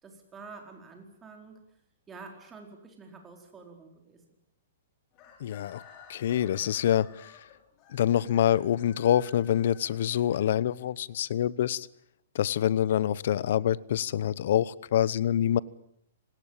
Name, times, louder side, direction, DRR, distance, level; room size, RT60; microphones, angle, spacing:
voice 1, 0.0-1.7 2.1-4.2, right 4 dB, 15° right, 3 dB, 4.6 m, -48 dB
Chicken rooster, 5.1-11.1, left 7 dB, 30° left, 6.1 m, -54 dB
voice 2, 5.4-5.8 6.1-7.4 7.9-11.9 12.3-15.6, left 10 dB, 55° left, 21 dB, 1.0 m, -26 dB
26.0 x 20.0 x 9.0 m, 0.73 s
hypercardioid pair, 165°, 0 cm